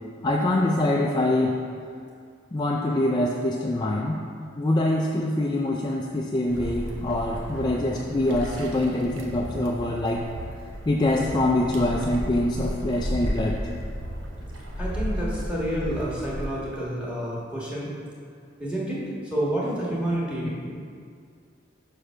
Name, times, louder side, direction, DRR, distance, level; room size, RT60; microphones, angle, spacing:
voice 1, 0.2-1.6 2.5-4.2 4.6-10.3 10.9-13.7 20.4-20.5, left 1 dB, 20° left, -1 dB, 0.4 m, -24 dB
sound 1, 6.4-16.5, equal, 80° right, 1.0 m, -34 dB
voice 2, 14.8-17.9 18.6-19.0 19.3-20.7, right 1 dB, 5° right, -7 dB, 1.5 m, -29 dB
5.5 x 5.0 x 6.1 m, 2.2 s
head